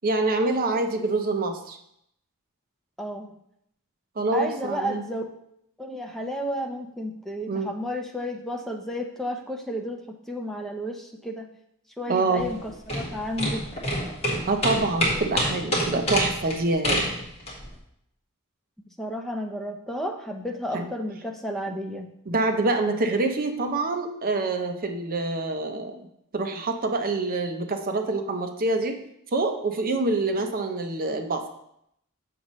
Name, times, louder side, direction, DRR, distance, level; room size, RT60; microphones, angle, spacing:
voice 1, 0.0-1.8 4.2-5.0 7.5-7.7 12.1-12.4 14.5-17.0 20.7-20.9 22.3-26.0 26.3-28.9 29.3-31.4, right 2 dB, 40° right, 5 dB, 0.6 m, -26 dB
voice 2, 3.0-3.3 4.3-5.3 5.8-11.5 12.0-13.6 15.0-15.1 19.0-22.1, equal, ahead, 2 dB, 0.6 m, -32 dB
sound 1, 12.4-17.7, equal, 30° left, 1.6 m, -27 dB
6.9 x 6.3 x 3.1 m, 0.75 s
head